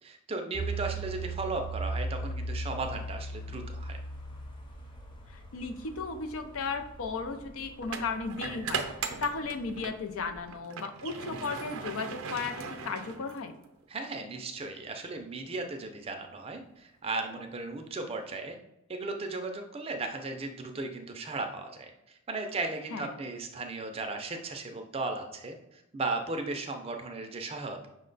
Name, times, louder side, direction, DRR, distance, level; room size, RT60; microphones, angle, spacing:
voice 1, 0.0-4.0 13.9-18.6 18.9-27.9, right 3 dB, 25° right, 4 dB, 0.4 m, -36 dB
sound 1, 0.5-9.9 10.3-10.4, right 2 dB, 25° left, 0.7 m, -39 dB
voice 2, 5.3-8.8 9.2-13.6 22.9-23.1, left 4 dB, 80° left, 7 dB, 0.5 m, -35 dB
sound 2, 5.8-6.0 7.8-10.0 10.4-13.6, right 5 dB, 80° right, 0.5 m, -38 dB
5.4 x 2.2 x 3.9 m, 0.88 s
head